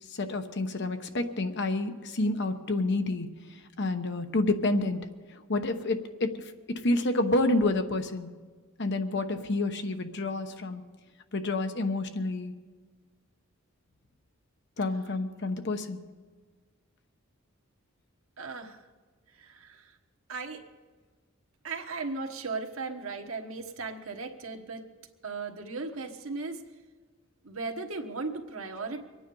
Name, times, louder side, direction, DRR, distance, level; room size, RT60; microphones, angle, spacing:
voice 1, 0.1-3.3 3.8-5.0 5.3-6.4 6.7-8.3 8.8-10.8 11.3-12.5 14.8-16.0, left 2 dB, 60° left, 7 dB, 1.0 m, -29 dB
voice 2, 18.4-18.8 19.4-19.9 20.3-20.6 21.6-24.8 25.2-26.6 27.4-29.0, right 3 dB, 85° right, 4 dB, 1.3 m, -36 dB
24.0 x 9.5 x 5.4 m, 1.4 s
head